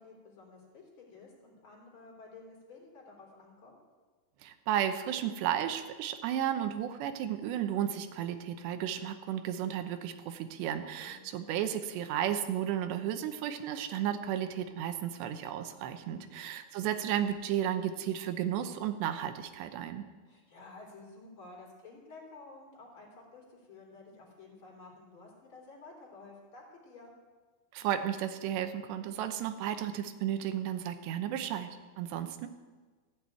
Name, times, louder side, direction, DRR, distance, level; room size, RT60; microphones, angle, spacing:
voice 1, 0.0-3.8 11.0-11.2 16.0-16.4 20.3-27.1, left 3 dB, 30° left, -1 dB, 3.8 m, -52 dB
voice 2, 4.4-20.0 27.7-31.7 32.0-32.5, right 10 dB, 90° right, 8 dB, 3.2 m, -33 dB
16.0 x 8.1 x 9.2 m, 1.4 s
omnidirectional pair, 4.9 m